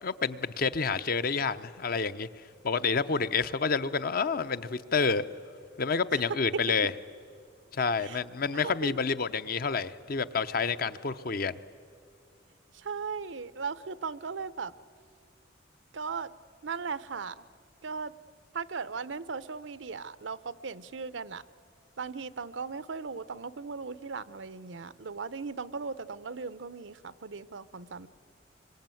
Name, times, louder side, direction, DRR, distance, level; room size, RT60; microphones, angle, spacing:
voice 1, 0.0-2.3 2.6-5.2 5.8-6.9 7.7-11.6, left 5 dB, 55° left, 0.7 m, -29 dB
voice 2, 8.5-9.0 10.7-10.8 12.7-14.7 15.9-16.3 16.6-17.4 17.8-18.1 18.5-21.4 22.0-28.1, right 5 dB, 85° right, 0.7 m, -37 dB
25.5 x 23.5 x 9.1 m
head